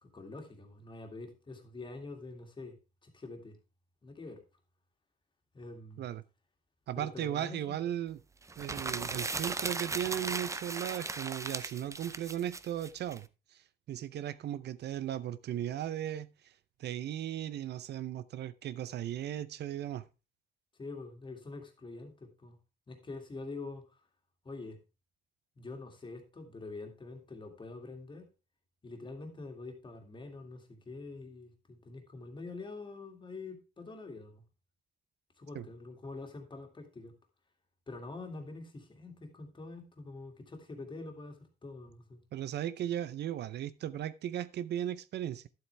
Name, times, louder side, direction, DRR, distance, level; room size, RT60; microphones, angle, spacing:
voice 1, 0.0-3.6 4.0-4.4 5.5-6.0 7.0-7.8 20.8-22.6 22.9-24.0 24.4-24.8 25.6-28.3 28.8-34.4 35.4-37.1 37.9-42.2, left 3 dB, 25° left, 2.2 m, -45 dB
voice 2, 6.9-8.2 8.6-13.3 13.5-13.6 13.9-16.5 16.8-20.1 35.5-35.7 42.3-45.5, right 11 dB, 70° right, 0.6 m, -36 dB
sound 1, 8.5-13.2, right 3 dB, 15° right, 0.5 m, -37 dB
11.5 x 7.9 x 3.3 m
cardioid pair, 130°, 18 cm